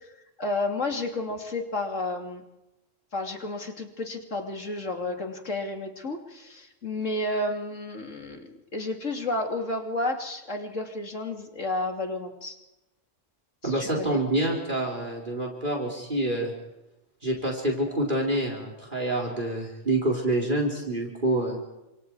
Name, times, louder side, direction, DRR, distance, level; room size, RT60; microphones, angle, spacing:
voice 1, 0.4-2.4 3.1-12.6 13.6-14.2, left 2 dB, 75° left, 3 dB, 3.1 m, -31 dB
voice 2, 13.6-16.5 17.2-21.6, right 1 dB, 40° right, -1 dB, 4.4 m, -27 dB
30.0 x 26.0 x 4.8 m, 0.97 s
omnidirectional pair, 1.3 m